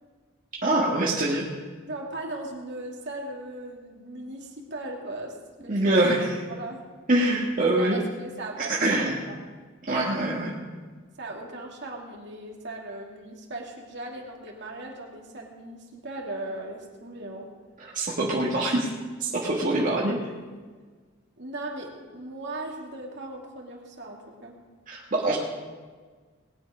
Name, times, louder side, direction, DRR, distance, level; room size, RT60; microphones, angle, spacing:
voice 1, 0.6-1.5 5.7-6.4 7.1-8.0 8.6-9.1 9.9-10.5 17.8-18.9 19.2-20.2 24.9-25.4, right 1 dB, 45° right, -4 dB, 1.8 m, -24 dB
voice 2, 1.9-5.4 5.6-6.8 7.8-9.4 11.2-17.5 21.4-24.6, right 2 dB, 60° right, 0 dB, 2.5 m, -38 dB
19.5 x 9.5 x 5.1 m, 1.5 s
head